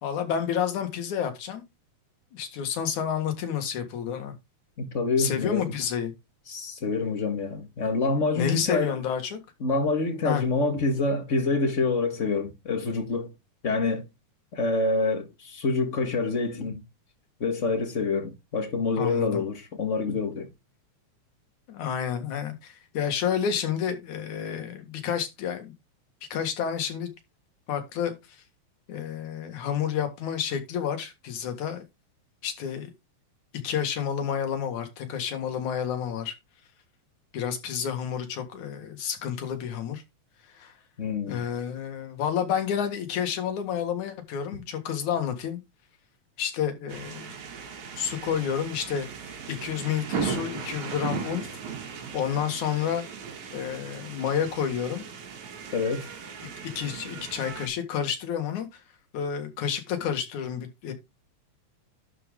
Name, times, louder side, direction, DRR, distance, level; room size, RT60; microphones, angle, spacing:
voice 1, 0.0-1.6 2.3-4.3 5.2-6.1 8.3-9.4 10.2-10.4 19.0-19.4 21.7-25.7 26.3-27.1 27.7-28.1 28.9-31.8 32.4-32.9 33.6-36.3 37.3-40.0 40.5-40.7 41.3-45.6 46.4-47.3 48.0-49.1 49.5-51.5 52.1-53.0 53.5-55.0 56.8-58.8 59.1-60.9, left 8 dB, 75° left, 3.1 m, -30 dB
voice 2, 4.9-5.7 6.5-8.9 9.6-13.3 13.6-14.0 14.5-16.8 17.4-20.5 41.0-41.4 55.7-56.1, left 3 dB, 30° left, 1.5 m, -26 dB
sound 1, 46.9-57.7, right 7 dB, 70° right, 3.2 m, -37 dB
11.5 x 5.0 x 3.7 m
omnidirectional pair, 3.4 m